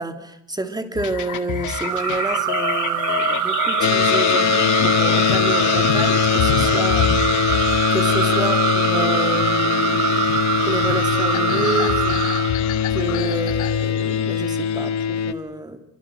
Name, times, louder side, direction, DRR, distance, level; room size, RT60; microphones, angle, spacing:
voice 1, 0.0-10.3 10.6-12.3 12.9-15.8, right 2 dB, 15° right, 8 dB, 2.9 m, -29 dB
sound 1, 1.0-15.0, left 9 dB, 80° left, 2.1 m, -29 dB
sound 2, 1.7-12.5, right 11 dB, 85° right, 1.7 m, -23 dB
sound 3, 3.8-15.3, left 9 dB, 65° left, 1.4 m, -21 dB
29.0 x 24.5 x 6.3 m, 0.74 s
cardioid pair, 90°, 30 cm